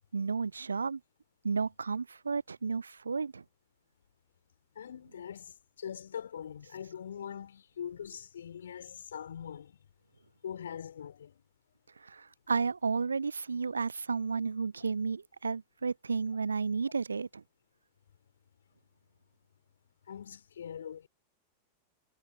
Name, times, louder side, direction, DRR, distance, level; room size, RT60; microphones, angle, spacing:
voice 1, 0.1-1.0 1.4-3.4 12.0-17.4, right 5 dB, 75° right, 0.4 m, -32 dB
voice 2, 4.8-9.8 10.4-11.3 20.1-21.1, left 8 dB, 65° left, 4.0 m, -42 dB
figure-of-eight pair, 90°, 0 cm